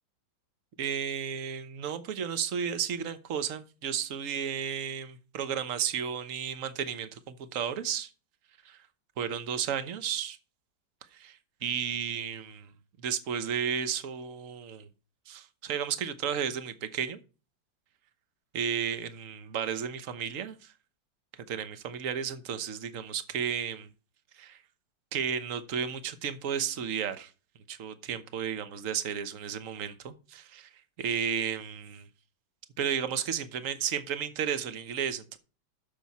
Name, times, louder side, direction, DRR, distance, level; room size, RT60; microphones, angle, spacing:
voice 1, 0.8-8.1 8.6-8.8 9.2-10.4 11.1-12.7 13.0-14.9 15.3-17.2 18.5-20.7 21.5-23.9 24.3-24.6 25.1-27.3 27.7-30.7 31.0-32.0 32.8-35.4, right 8 dB, 50° right, 1.1 m, -33 dB
9.2 x 7.0 x 4.1 m
omnidirectional pair, 2.1 m